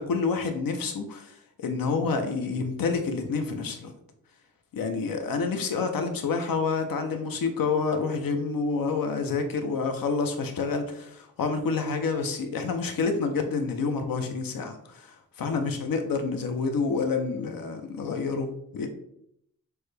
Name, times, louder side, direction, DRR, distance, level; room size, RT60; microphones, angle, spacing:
voice 1, 0.0-3.9 4.7-18.9, left 4 dB, 85° left, 6 dB, 0.7 m, -28 dB
6.1 x 2.2 x 3.3 m, 0.74 s
wide cardioid pair, 165°, 34 cm